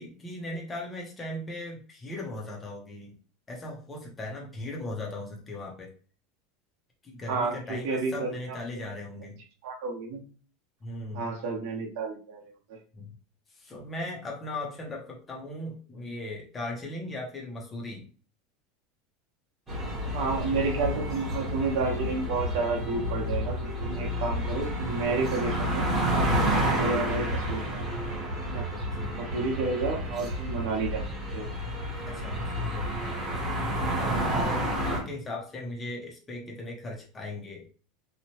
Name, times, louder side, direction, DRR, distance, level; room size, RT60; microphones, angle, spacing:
voice 1, 0.0-3.1 3.5-5.9 7.0-9.4 10.8-11.2 13.0-13.2 13.5-18.1 25.2-25.3 26.2-26.7 28.7-29.2 32.1-33.4 33.6-37.7, left 2 dB, 15° left, -2 dB, 0.5 m, -38 dB
voice 2, 7.3-8.6 9.6-10.2 11.1-12.4 12.7-12.8 20.1-23.6 23.8-25.9 26.7-27.7 28.5-28.6 29.1-31.1 31.3-31.5, right 3 dB, 60° right, 1 dB, 0.8 m, -30 dB
sound 1, 19.7-35.0, equal, 10° right, 0.9 m, -30 dB
2.9 x 2.0 x 2.7 m, 0.40 s
supercardioid pair, 170°, 0 cm